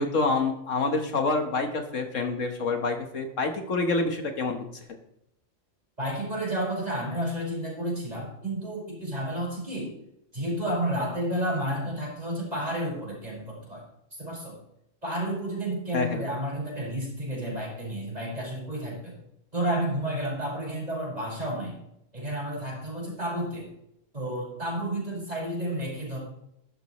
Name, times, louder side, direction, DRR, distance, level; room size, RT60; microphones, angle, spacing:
voice 1, 0.0-4.6 15.9-16.2, left 3 dB, 70° left, 5 dB, 1.7 m, -27 dB
voice 2, 6.0-9.9 10.3-13.8 14.1-14.6 15.0-19.2 19.5-21.8 22.1-23.7 24.1-26.2, right 1 dB, 30° right, -4 dB, 5.5 m, -31 dB
12.5 x 12.5 x 3.1 m, 0.78 s
omnidirectional pair, 1.3 m